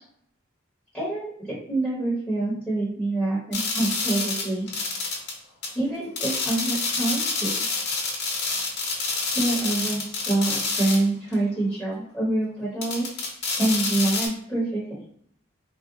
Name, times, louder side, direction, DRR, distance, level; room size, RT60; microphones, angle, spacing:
voice 1, 0.9-4.7 5.7-7.5 9.3-13.3 13.6-15.0, right 2 dB, ahead, -8 dB, 0.8 m, -26 dB
sound 1, 3.5-5.3 5.6-5.7 6.2-11.0 11.3-11.4 12.8-14.3, left 3 dB, 55° left, 0.7 m, -28 dB
3.6 x 2.1 x 2.6 m, 0.66 s
head